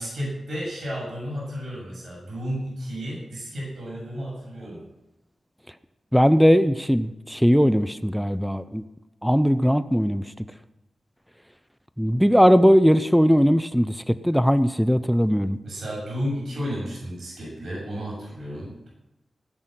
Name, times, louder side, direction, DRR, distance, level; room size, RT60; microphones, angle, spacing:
voice 1, 0.0-4.9 15.6-18.9, equal, 65° right, -5 dB, 6.8 m, -32 dB
voice 2, 6.1-8.8 9.2-10.2 12.0-15.6, equal, ahead, 12 dB, 0.6 m, -19 dB
18.0 x 6.2 x 9.1 m, 0.94 s
wide cardioid pair, 120°, 0 cm